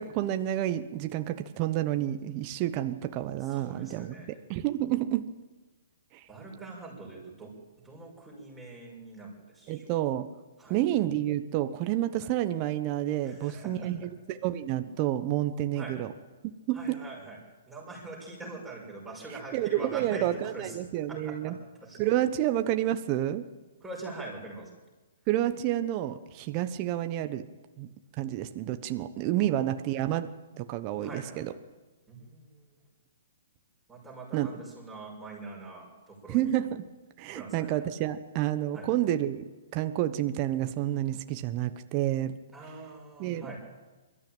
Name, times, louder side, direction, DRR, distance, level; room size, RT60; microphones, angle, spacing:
voice 1, 0.0-4.1 4.5-5.3 6.1-6.2 9.7-10.3 10.7-16.1 16.7-17.0 19.5-21.5 22.0-23.4 25.3-27.4 27.8-27.9 28.2-30.3 30.6-31.5 34.3-34.5 36.3-36.9 37.2-39.4 39.7-42.4 43.2-43.5, right 13 dB, 35° right, 9 dB, 1.0 m, -29 dB
voice 2, 3.4-4.4 6.3-9.9 10.6-10.8 12.2-12.3 13.2-14.0 15.8-16.0 16.7-17.4 17.7-20.8 21.1-22.0 23.8-24.8 29.4-29.9 31.0-31.4 32.1-32.8 33.9-36.5 37.3-37.8 38.7-38.9 42.5-43.6, right 3 dB, 5° right, -4 dB, 6.0 m, -44 dB
22.5 x 13.5 x 8.9 m, 1.2 s
hypercardioid pair, 140°, 0 cm